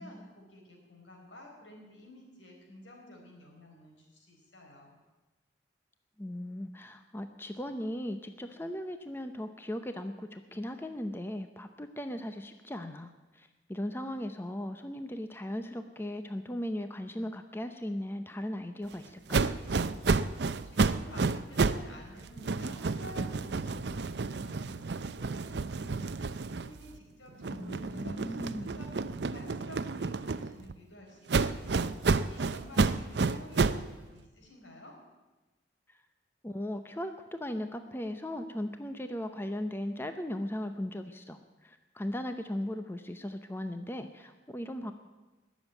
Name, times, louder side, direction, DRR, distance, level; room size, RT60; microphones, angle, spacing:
voice 1, 0.0-5.0 20.6-35.0, left 1 dB, 85° left, 1 dB, 4.5 m, -52 dB
voice 2, 6.2-19.4 27.5-28.8 35.9-36.0 36.4-44.9, left 1 dB, 10° left, 8 dB, 0.7 m, -38 dB
sound 1, 19.3-21.9 22.2-27.0 27.4-30.7 31.3-33.9, right 4 dB, 60° right, 0.6 m, -30 dB
20.0 x 7.3 x 9.1 m, 1.2 s
head